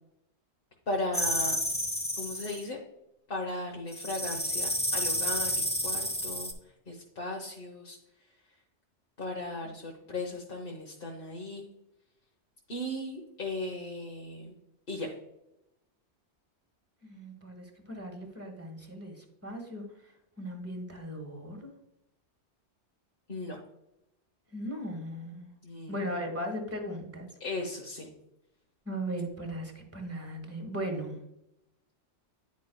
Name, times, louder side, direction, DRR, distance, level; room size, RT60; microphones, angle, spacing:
voice 1, 0.9-1.6 2.2-2.8 3.3-6.5 6.9-8.0 9.2-11.6 12.7-14.5 14.9-15.1 23.3-23.6 25.6-25.9 27.4-28.1, left 2 dB, 55° left, 0 dB, 1.2 m, -36 dB
sound 1, 1.1-2.6 3.9-6.5, equal, 10° left, 0.9 m, -30 dB
voice 2, 17.0-20.1 20.4-21.7 24.5-25.5 25.9-27.3 28.8-31.2, equal, 10° right, 2 dB, 1.3 m, -38 dB
10.5 x 5.3 x 2.2 m, 0.86 s
omnidirectional pair, 1.2 m